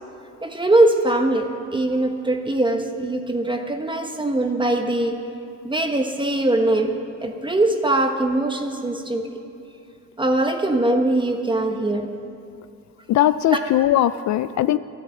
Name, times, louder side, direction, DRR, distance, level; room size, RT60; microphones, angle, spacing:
voice 1, 0.4-5.2 5.6-6.9 7.2-9.2 10.2-12.1 13.5-13.6, right 2 dB, 15° right, 4 dB, 1.2 m, -21 dB
voice 2, 13.1-14.8, left 13 dB, 65° left, 14 dB, 0.5 m, -19 dB
12.5 x 11.0 x 7.8 m, 2.6 s
cardioid pair, 90°, 30 cm